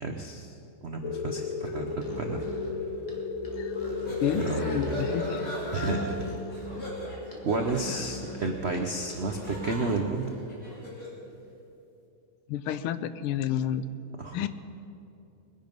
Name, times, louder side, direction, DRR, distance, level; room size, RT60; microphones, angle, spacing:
voice 1, 0.0-0.5 0.8-2.4 4.3-4.9 5.7-6.3 7.4-10.3 14.2-14.5, right 3 dB, 65° right, 3 dB, 0.6 m, -31 dB
sound 1, 1.0-9.4, left 3 dB, 50° left, 1.0 m, -35 dB
Musical instrument, 1.9-9.9, left 1 dB, 15° left, 1.8 m, -42 dB
sound 2, 3.7-11.2, equal, 35° left, 3.5 m, -39 dB
voice 2, 4.2-5.4 6.8-6.9 7.9-8.0 12.5-13.9 14.3-14.5, left 9 dB, 80° left, 13 dB, 1.5 m, -30 dB
21.0 x 10.5 x 5.4 m, 2.7 s
omnidirectional pair, 2.4 m